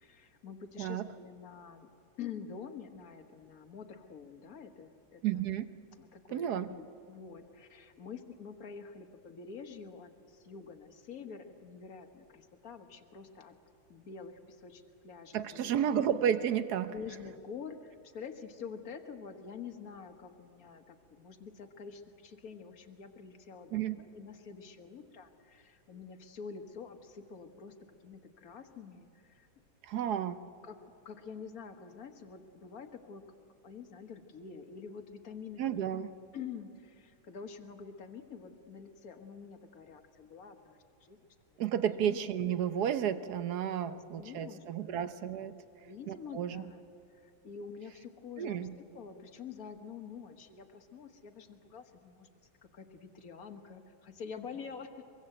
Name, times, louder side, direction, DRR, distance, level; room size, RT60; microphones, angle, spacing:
voice 1, 0.0-1.9 2.2-5.2 6.0-13.5 13.9-15.8 16.9-27.7 28.0-29.5 30.0-30.2 30.6-30.8 31.0-33.2 33.6-35.9 36.3-41.2 41.9-42.2 43.8-45.0 45.8-46.8 47.1-54.9, left 6 dB, 45° left, 6 dB, 1.7 m, -47 dB
voice 2, 5.2-5.7 6.3-6.7 15.3-16.9 23.7-24.0 29.8-30.4 35.6-36.1 41.6-45.6 46.1-46.7 48.4-48.7, right 9 dB, 60° right, 11 dB, 1.2 m, -32 dB
23.5 x 23.5 x 7.9 m, 2.6 s
omnidirectional pair, 2.3 m